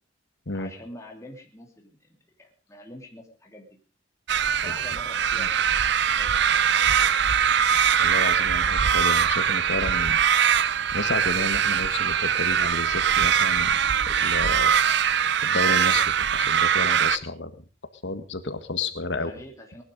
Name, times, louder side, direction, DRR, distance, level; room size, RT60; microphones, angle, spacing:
voice 1, 0.5-3.8 4.6-7.2 19.1-19.8, left 1 dB, 15° left, 0 dB, 2.9 m, -46 dB
sound 1, 4.3-17.2, right 8 dB, 65° right, 0.7 m, -22 dB
voice 2, 8.0-10.2 10.9-13.8 14.1-14.7 15.4-17.5 18.0-19.3, left 3 dB, 70° left, 10 dB, 1.9 m, -31 dB
19.5 x 11.5 x 5.2 m, 0.37 s
head